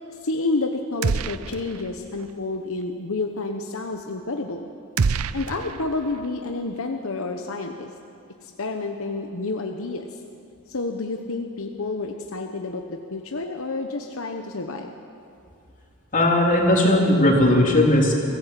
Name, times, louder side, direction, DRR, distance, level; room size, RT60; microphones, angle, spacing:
voice 1, 0.2-4.7 5.3-7.9 8.4-10.2 10.7-14.9, left 3 dB, 65° left, 4 dB, 1.1 m, -29 dB
sound 1, 1.0-1.9 2.2-2.3 5.0-6.3, right 5 dB, 70° right, 0.6 m, -26 dB
voice 2, 16.1-18.2, left 1 dB, 35° left, -1 dB, 3.4 m, -17 dB
25.0 x 15.5 x 7.7 m, 2.5 s
head